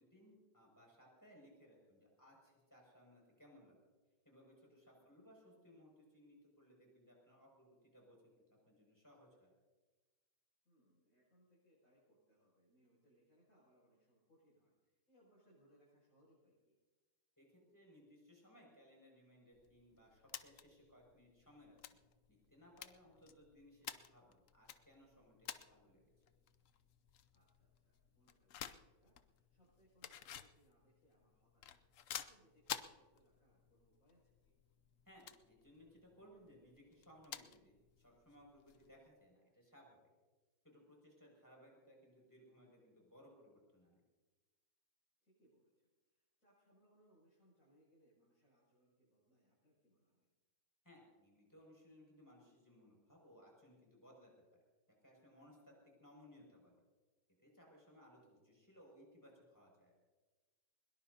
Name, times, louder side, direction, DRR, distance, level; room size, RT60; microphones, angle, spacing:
voice 1, 0.0-3.8 4.2-9.5 17.4-21.8 22.3-26.0 35.0-40.0 40.6-44.0 50.8-54.6 55.0-55.7 56.0-56.8 57.4-59.9, equal, 10° left, -2 dB, 6.4 m, -64 dB
voice 2, 4.9-5.3 10.6-16.7 23.1-23.3 27.3-34.5 45.2-50.3, equal, 40° left, -8 dB, 7.8 m, -73 dB
sound 1, 19.5-39.1, left 9 dB, 70° left, 0.7 m, -54 dB
22.5 x 21.5 x 2.8 m, 1.2 s
omnidirectional pair, 2.2 m